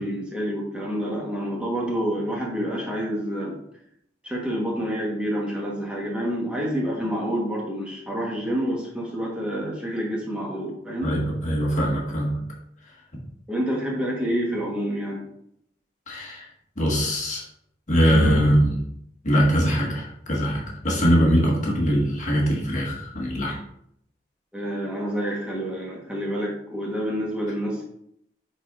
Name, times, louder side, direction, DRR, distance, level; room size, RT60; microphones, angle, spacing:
voice 1, 0.0-3.6 4.2-11.1 13.5-15.2 24.5-27.8, equal, 5° right, -4 dB, 1.2 m, -28 dB
voice 2, 11.0-12.4 16.1-16.5 16.8-17.4 17.9-18.8 19.2-23.6, equal, 45° left, -3 dB, 1.6 m, -22 dB
10.5 x 4.3 x 2.5 m, 0.73 s
head